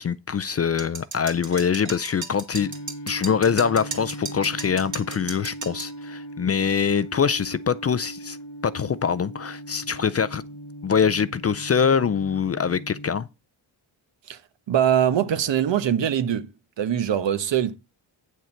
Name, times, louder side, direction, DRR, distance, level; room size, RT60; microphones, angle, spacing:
voice 1, 0.0-2.7 3.1-8.4 8.6-10.4 10.8-13.3, left 7 dB, 35° left, 0.4 m, -24 dB
sound 1, 0.8-5.9, right 4 dB, 40° right, 2.0 m, -35 dB
sound 2, 2.6-13.2, right 1 dB, 80° left, 1.7 m, -39 dB
voice 2, 14.7-16.5 16.8-17.8, right 10 dB, 70° right, 1.1 m, -22 dB
9.1 x 6.5 x 4.4 m
wide cardioid pair, 125°, 46 cm